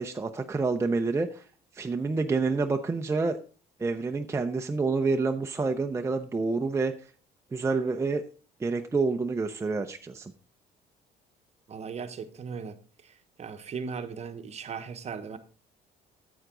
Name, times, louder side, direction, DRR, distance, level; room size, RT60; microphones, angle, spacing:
voice 1, 0.0-1.4 1.7-3.4 3.8-6.9 7.5-8.2 8.6-10.3, right 4 dB, 15° right, 0.6 m, -28 dB
voice 2, 11.7-12.8 13.4-15.4, right 6 dB, 40° right, 1.0 m, -37 dB
9.3 x 8.1 x 3.8 m
cardioid pair, 110°, 17 cm